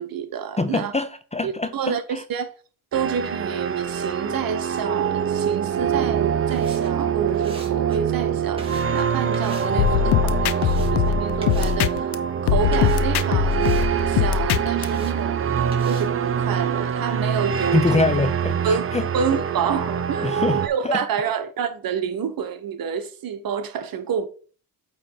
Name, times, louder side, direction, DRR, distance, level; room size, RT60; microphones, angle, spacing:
voice 1, 0.0-0.9 1.4-2.5 2.9-15.5 15.8-18.1 18.6-24.3, right 7 dB, 55° right, 1.2 m, -28 dB
voice 2, 0.6-2.2 17.7-19.1 20.2-21.0, left 3 dB, 15° left, 0.6 m, -24 dB
sound 1, 2.9-20.7, right 8 dB, 35° right, 0.6 m, -24 dB
sound 2, 6.4-19.0, right 2 dB, 15° right, 2.2 m, -47 dB
sound 3, 9.8-12.1 12.5-14.8, left 11 dB, 75° left, 0.7 m, -21 dB
8.3 x 3.2 x 4.6 m
cardioid pair, 85°, 41 cm